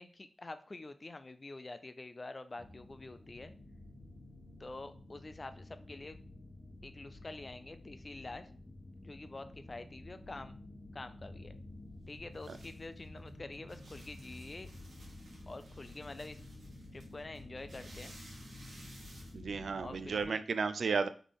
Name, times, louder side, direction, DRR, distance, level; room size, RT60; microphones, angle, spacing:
voice 1, 0.0-3.5 4.6-6.2 6.8-8.5 9.0-10.6 10.9-11.6 12.1-14.7 15.5-16.4 16.9-18.2 19.8-20.4, left 2 dB, 25° left, 10 dB, 0.3 m, -47 dB
sound 1, 2.6-20.3, left 2 dB, 10° left, 0.9 m, -51 dB
sound 2, 11.6-20.2, right 2 dB, 90° right, 1.3 m, -58 dB
voice 2, 19.3-21.1, right 5 dB, 65° right, 12 dB, 0.3 m, -33 dB
4.1 x 3.2 x 3.6 m, 0.41 s
wide cardioid pair, 165°, 0 cm